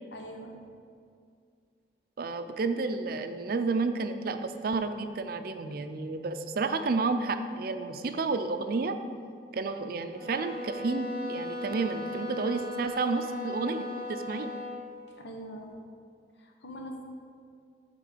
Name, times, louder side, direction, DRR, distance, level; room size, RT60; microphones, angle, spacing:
voice 1, 0.1-0.6 15.2-15.7 16.4-17.0, equal, 85° left, 2 dB, 1.0 m, -42 dB
voice 2, 2.2-9.0 9.5-14.5, right 3 dB, 55° right, 8 dB, 0.4 m, -31 dB
sound 1, 10.1-14.8, left 1 dB, 60° left, 1.8 m, -37 dB
8.8 x 3.8 x 5.0 m, 2.3 s
head